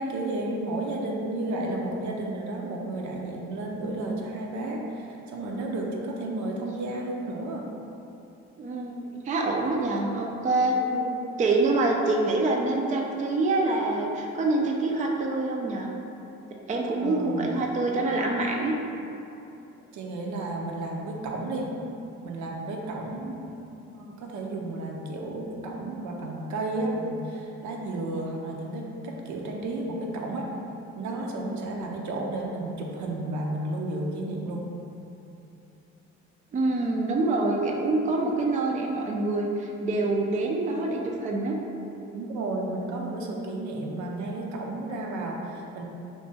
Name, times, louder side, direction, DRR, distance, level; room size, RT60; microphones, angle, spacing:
voice 1, 0.0-7.7 9.7-10.0 10.7-11.1 17.0-17.6 19.9-21.7 22.2-23.5 23.8-30.5 30.9-34.6 42.1-45.8, right 2 dB, 75° right, 0 dB, 0.5 m, -32 dB
voice 2, 8.6-10.8 11.4-15.9 16.7-18.7 36.5-41.6, right 2 dB, 25° right, 0 dB, 0.3 m, -26 dB
2.9 x 2.6 x 3.3 m, 2.8 s
cardioid pair, 90°, 30 cm